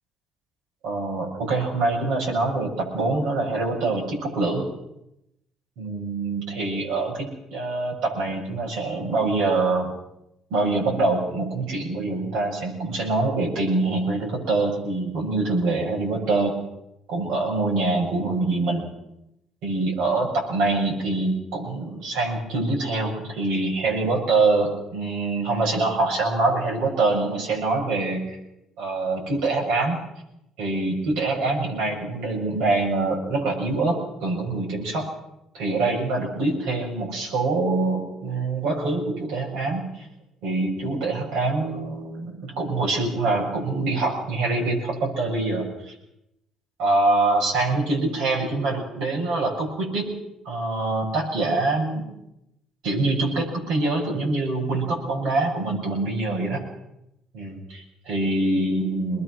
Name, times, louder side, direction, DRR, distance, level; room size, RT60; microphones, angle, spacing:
voice 1, 0.8-4.7 5.8-9.9 10.5-16.5 17.1-18.8 19.6-28.4 28.8-30.0 30.6-35.1 35.5-40.1 40.4-45.9 46.8-50.1 50.4-52.0 52.8-56.6 57.3-59.2, right 3 dB, 85° right, -2 dB, 7.2 m, -24 dB
22.5 x 20.5 x 6.4 m, 0.84 s
cardioid pair, 95°, 0 cm